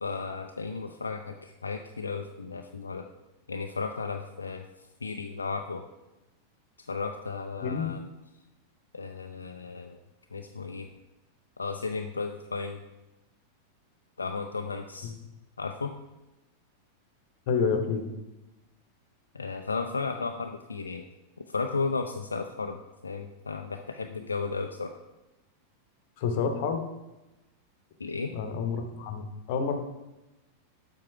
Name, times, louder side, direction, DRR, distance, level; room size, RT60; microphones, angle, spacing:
voice 1, 0.0-3.1 3.5-4.6 5.0-5.8 6.8-8.0 8.9-10.0 10.3-10.9 11.6-12.8 14.2-15.1 15.6-15.9 19.3-21.0 21.5-24.9 28.0-28.3, left 4 dB, 75° left, 4 dB, 0.4 m, -34 dB
voice 2, 17.5-18.1 26.2-26.8 28.3-29.7, left 5 dB, 50° left, 6 dB, 1.0 m, -28 dB
7.7 x 4.6 x 4.7 m, 1.0 s
figure-of-eight pair, 90°, 0 cm